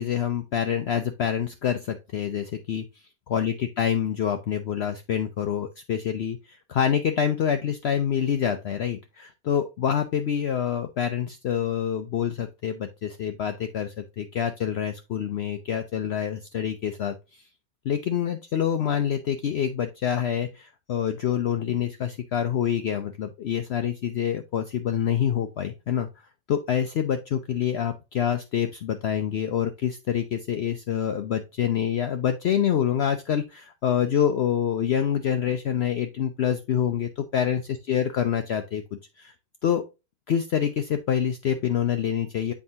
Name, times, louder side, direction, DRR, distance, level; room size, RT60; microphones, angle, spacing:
voice 1, 0.0-2.9 3.3-17.1 17.8-26.1 26.5-37.6 37.9-38.8 39.2-39.3 39.6-39.9 40.3-42.5, left 9 dB, 60° left, 7 dB, 0.8 m, -26 dB
7.6 x 4.7 x 2.7 m, 0.26 s
omnidirectional pair, 1.4 m